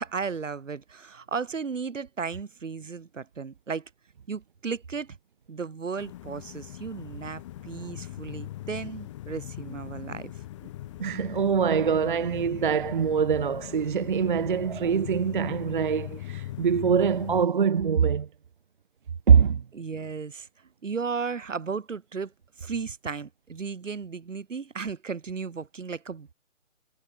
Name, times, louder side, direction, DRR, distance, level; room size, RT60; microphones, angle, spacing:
voice 1, 0.0-3.9 4.3-5.2 5.5-10.4 19.7-20.5 20.8-22.3 22.6-26.3, right 5 dB, 75° right, 2.4 m, -35 dB
sound 1, 6.0-17.4, left 14 dB, 25° left, 2.1 m, -40 dB
voice 2, 11.0-18.3 19.3-19.6, right 7 dB, 40° right, 0.6 m, -23 dB
hypercardioid pair, 160°, 38 cm